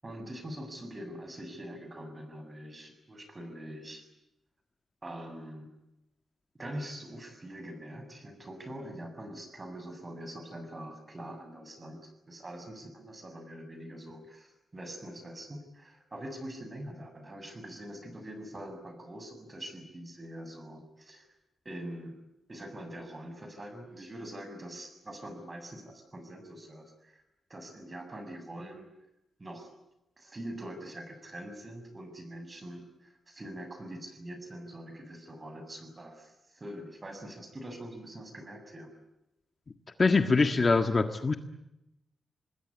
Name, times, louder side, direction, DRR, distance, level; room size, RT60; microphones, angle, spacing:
voice 1, 0.0-4.0 5.0-5.7 6.6-21.3 21.7-22.2 22.5-27.2 27.5-28.9 29.4-29.7 30.2-38.9, right 1 dB, 25° right, 7 dB, 7.1 m, -44 dB
voice 2, 40.0-41.4, left 4 dB, 35° left, 7 dB, 1.6 m, -23 dB
26.5 x 20.0 x 9.7 m, 0.89 s
cardioid pair, 100°, 0 cm